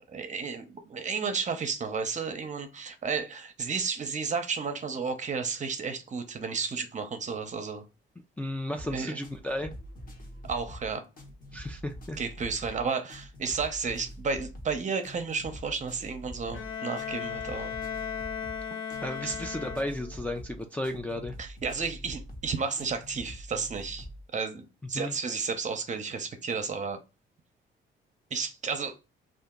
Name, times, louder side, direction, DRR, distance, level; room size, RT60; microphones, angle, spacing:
voice 1, 0.1-7.8 8.9-9.2 10.4-11.0 12.2-17.7 19.2-19.4 21.4-24.1 24.3-27.0 28.3-29.0, right 5 dB, 40° right, 0.7 m, -32 dB
voice 2, 8.4-9.7 11.5-12.2 19.0-21.4 24.9-25.2, left 1 dB, 5° left, 0.3 m, -34 dB
sound 1, 8.7-24.2, equal, 45° left, 1.1 m, -45 dB
Bowed string instrument, 16.5-20.3, left 7 dB, 90° left, 0.6 m, -36 dB
2.8 x 2.5 x 3.6 m
cardioid pair, 90°, 20 cm